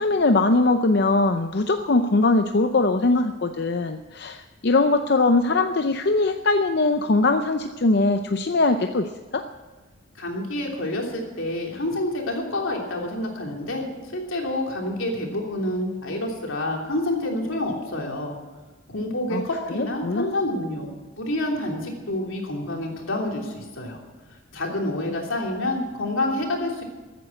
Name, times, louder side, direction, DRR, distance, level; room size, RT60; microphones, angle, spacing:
voice 1, 0.0-9.4 19.3-19.4 19.7-20.3, left 3 dB, 55° left, 7 dB, 0.6 m, -21 dB
voice 2, 10.1-18.3 18.9-20.9 21.2-24.0 24.5-26.8, left 1 dB, 80° left, 0 dB, 3.2 m, -28 dB
14.5 x 9.2 x 8.6 m, 1.3 s
head